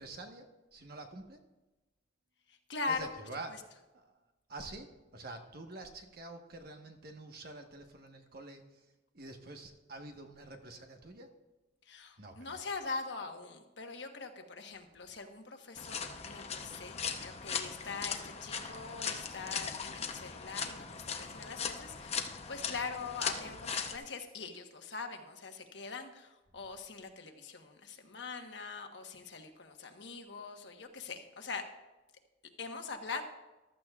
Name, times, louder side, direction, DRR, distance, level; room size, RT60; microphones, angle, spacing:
voice 1, 0.0-1.4 2.9-3.7 3.9-4.1 4.5-8.7 9.1-11.3 12.2-12.7, right 2 dB, 55° right, 4 dB, 1.3 m, -47 dB
voice 2, 2.7-3.1 11.9-31.6 32.6-33.2, left 4 dB, 70° left, 4 dB, 1.2 m, -42 dB
sound 1, 15.8-24.0, left 6 dB, 35° left, 0.8 m, -39 dB
14.5 x 12.5 x 2.4 m, 1.1 s
head